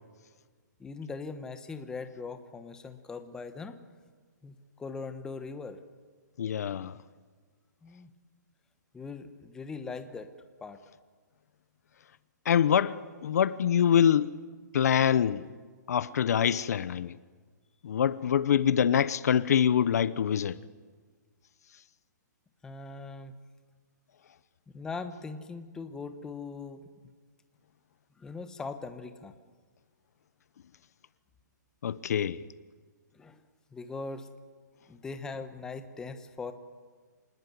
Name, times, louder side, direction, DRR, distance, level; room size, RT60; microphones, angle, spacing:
voice 1, 0.8-3.8 4.4-5.8 7.8-8.1 8.9-10.3 10.6-10.8 16.0-16.2 22.6-23.3 24.7-26.8 28.2-29.4 33.1-33.4 33.7-34.3 34.9-36.5, left 4 dB, 5° left, 1.1 m, -40 dB
voice 2, 6.4-7.0 12.4-14.4 14.7-15.5 15.9-17.2 17.8-20.6 31.8-32.4, left 8 dB, 60° left, 0.8 m, -25 dB
26.5 x 20.0 x 9.5 m
hypercardioid pair, 165°, 10 cm